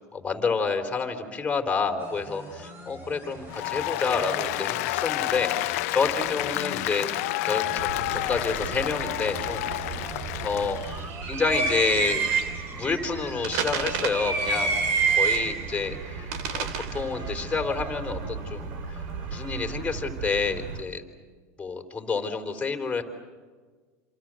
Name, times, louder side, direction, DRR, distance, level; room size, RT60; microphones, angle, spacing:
voice 1, 0.1-7.1 7.4-9.7 10.4-12.2 12.7-14.8 15.2-21.0 21.6-23.0, left 4 dB, 15° left, 5 dB, 4.1 m, -29 dB
sound 1, 2.0-20.0, right 1 dB, 25° right, 7.5 m, -44 dB
Applause, 3.5-11.0, left 19 dB, 65° left, 0.8 m, -30 dB
sound 2, 7.8-20.8, right 5 dB, 65° right, 3.0 m, -30 dB
28.0 x 27.0 x 7.8 m, 1.5 s
hypercardioid pair, 105°, 8 cm